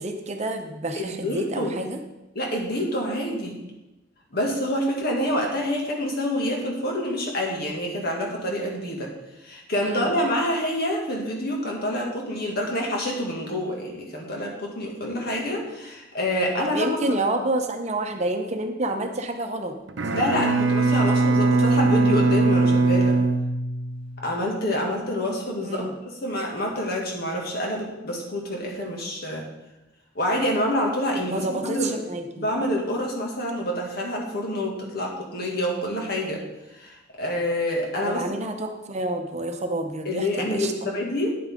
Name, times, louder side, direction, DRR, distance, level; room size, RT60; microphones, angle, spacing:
voice 1, 0.0-2.0 9.8-10.1 16.6-19.8 25.6-25.9 31.3-32.5 38.0-40.7, right 2 dB, 35° right, 5 dB, 0.8 m, -29 dB
voice 2, 0.9-1.8 2.4-3.6 4.3-9.1 9.4-17.2 20.1-23.2 24.2-29.5 30.2-31.9 32.4-36.4 36.7-38.2 40.1-41.4, left 1 dB, 55° left, 0 dB, 2.1 m, -27 dB
Bowed string instrument, 19.9-24.2, right 3 dB, 75° right, 0.7 m, -21 dB
9.5 x 8.6 x 3.7 m, 1.0 s
head